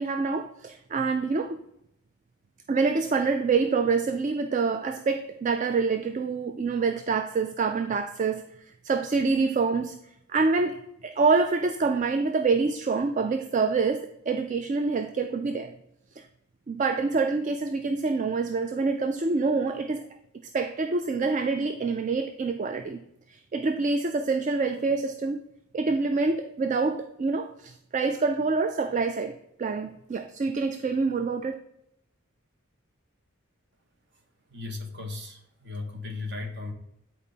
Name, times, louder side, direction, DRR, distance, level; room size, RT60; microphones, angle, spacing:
voice 1, 0.0-1.6 2.7-8.4 8.8-10.0 10.3-15.7 16.2-16.3 16.7-20.1 20.5-23.0 23.3-25.4 25.7-29.3 29.6-31.5, right 4 dB, 35° right, 8 dB, 0.3 m, -26 dB
voice 2, 34.5-36.7, left 3 dB, 55° right, 4 dB, 1.3 m, -36 dB
9.2 x 4.5 x 4.0 m, 0.78 s
head